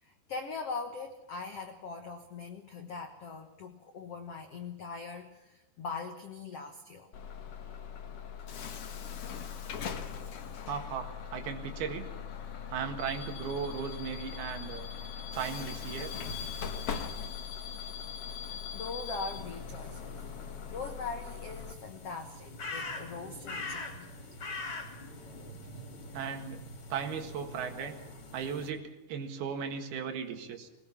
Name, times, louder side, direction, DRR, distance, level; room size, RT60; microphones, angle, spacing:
voice 1, 0.0-7.1 18.7-24.1, left 4 dB, 70° left, 5 dB, 1.4 m, -41 dB
Bus / Alarm, 7.1-21.7, left 7 dB, 55° left, 1.8 m, -40 dB
voice 2, 10.7-12.1 12.7-14.9 15.3-16.1 26.1-26.6 26.9-27.9 28.3-30.7, right 7 dB, 70° right, 5 dB, 3.6 m, -36 dB
sound 1, 19.3-28.7, left 3 dB, 35° left, 3.4 m, -44 dB
21.5 x 19.5 x 7.1 m, 0.99 s
omnidirectional pair, 4.7 m